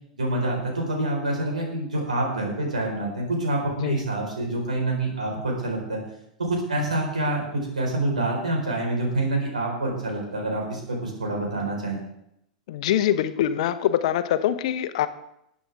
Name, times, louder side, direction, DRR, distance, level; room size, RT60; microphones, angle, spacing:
voice 1, 0.1-6.0 6.4-12.0, right 1 dB, 80° right, 0 dB, 4.4 m, -27 dB
voice 2, 12.7-15.1, left 11 dB, 60° left, 12 dB, 0.9 m, -23 dB
20.5 x 8.5 x 3.6 m, 0.78 s
figure-of-eight pair, 90°, 4 cm